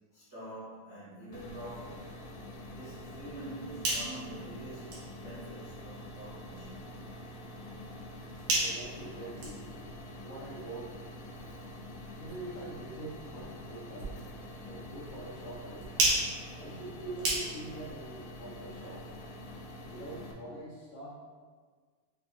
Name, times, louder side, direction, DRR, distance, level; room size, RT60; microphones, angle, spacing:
voice 1, 0.1-2.1 2.6-6.7 11.4-11.6, right 1 dB, 90° right, -12 dB, 0.6 m, -46 dB
sound 1, 1.3-20.3, left 1 dB, 90° left, 2.0 m, -46 dB
sound 2, 3.6-17.9, right 2 dB, 70° right, 2.2 m, -37 dB
voice 2, 8.5-9.7 10.2-11.0 12.2-14.2 14.6-15.9 16.5-19.1 19.9-21.1, right 2 dB, 75° left, -7 dB, 1.4 m, -44 dB
6.4 x 2.7 x 2.4 m, 1.5 s
omnidirectional pair, 3.3 m